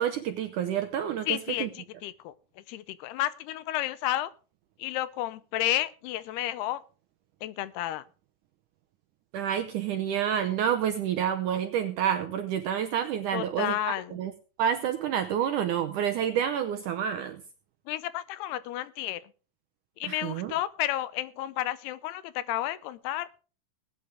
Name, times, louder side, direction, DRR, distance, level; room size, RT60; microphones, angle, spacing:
voice 1, 0.0-1.7 9.3-14.3 14.6-17.4 20.0-20.5, right 9 dB, 80° right, 1.9 m, -29 dB
voice 2, 1.3-4.3 4.8-6.8 7.4-8.0 13.3-14.2 17.9-19.3 20.0-23.4, left 14 dB, 85° left, 2.8 m, -32 dB
19.5 x 9.5 x 3.5 m
omnidirectional pair, 4.5 m